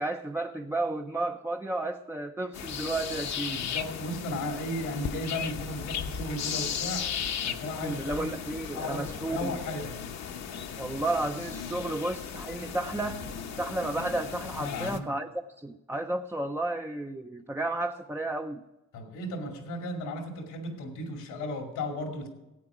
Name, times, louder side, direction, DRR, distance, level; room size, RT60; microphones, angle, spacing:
voice 1, 0.0-3.7 7.8-9.6 10.8-13.3 13.6-15.3 15.6-18.6, right 2 dB, 10° right, 4 dB, 0.5 m, -32 dB
sound 1, 2.5-15.0, left 7 dB, 60° left, 1.0 m, -36 dB
voice 2, 3.5-7.1 7.4-8.3 8.7-10.0 14.6-15.1 18.9-22.3, left 1 dB, 90° left, 3 dB, 2.4 m, -35 dB
14.5 x 8.7 x 4.9 m, 0.98 s
cardioid pair, 90°, 30 cm